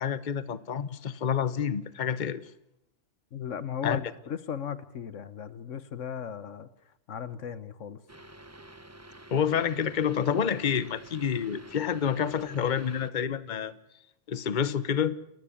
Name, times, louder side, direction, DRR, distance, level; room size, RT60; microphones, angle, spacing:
voice 1, 0.0-2.4 3.8-4.0 9.3-13.7 14.3-15.2, left 8 dB, 40° left, 15 dB, 1.1 m, -28 dB
voice 2, 3.3-8.0, left 8 dB, 85° left, 15 dB, 1.5 m, -37 dB
sound 1, 8.1-13.1, right 1 dB, 15° right, 1.0 m, -49 dB
30.0 x 15.0 x 8.5 m, 0.80 s
omnidirectional pair, 1.3 m